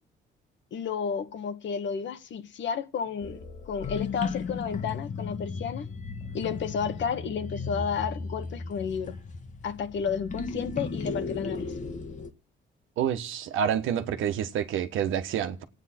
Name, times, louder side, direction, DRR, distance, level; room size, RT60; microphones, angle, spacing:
voice 1, 0.7-5.9 6.3-9.2 9.6-11.7, left 6 dB, 70° left, 1.4 m, -32 dB
sound 1, 3.2-12.3, left 4 dB, 40° left, 1.4 m, -36 dB
voice 2, 13.0-15.6, right 9 dB, 85° right, 1.3 m, -28 dB
27.0 x 9.1 x 4.4 m
cardioid pair, 90°, 20 cm